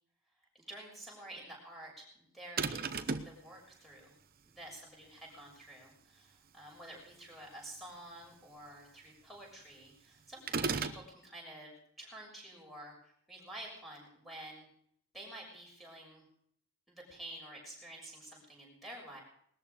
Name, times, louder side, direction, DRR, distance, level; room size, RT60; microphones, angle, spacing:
voice 1, 0.5-3.0 3.2-4.1 4.4-11.7 12.0-14.7 15.1-16.2 16.9-19.2, right 1 dB, ahead, -4 dB, 6.6 m, -50 dB
sound 1, 2.6-3.4 10.5-11.1, right 5 dB, 45° right, 0.8 m, -34 dB
20.0 x 13.5 x 5.1 m, 0.67 s
head